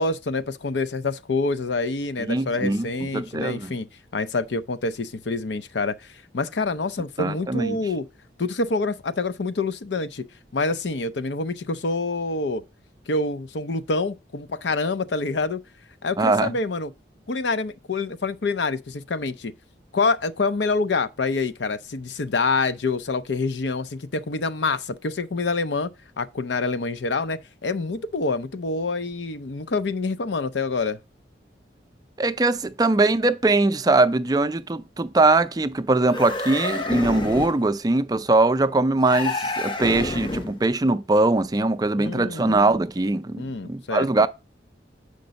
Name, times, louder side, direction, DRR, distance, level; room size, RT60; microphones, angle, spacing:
voice 1, 0.0-3.9 4.1-8.1 8.4-10.2 10.5-12.6 13.1-15.6 16.0-16.9 17.3-19.5 19.9-25.9 26.2-31.0 42.0-42.5 43.4-44.1, left 3 dB, 75° left, 0.6 m, -26 dB
voice 2, 2.2-2.9 3.1-3.7 7.2-7.8 16.2-16.5 32.2-44.3, right 2 dB, 20° right, 0.4 m, -21 dB
sound 1, 36.0-37.7 39.0-40.6, left 2 dB, 25° left, 0.7 m, -28 dB
7.7 x 5.2 x 5.2 m
head